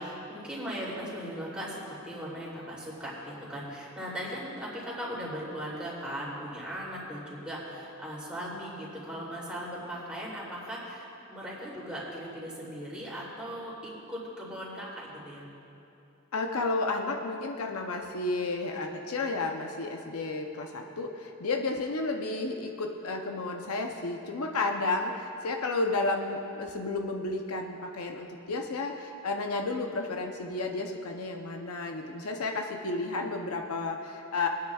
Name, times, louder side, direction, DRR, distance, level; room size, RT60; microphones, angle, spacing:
voice 1, 0.0-15.4, equal, 5° right, -7 dB, 3.0 m, -38 dB
voice 2, 16.3-34.5, left 3 dB, 70° left, 3 dB, 0.7 m, -32 dB
23.5 x 9.6 x 2.4 m, 2.9 s
head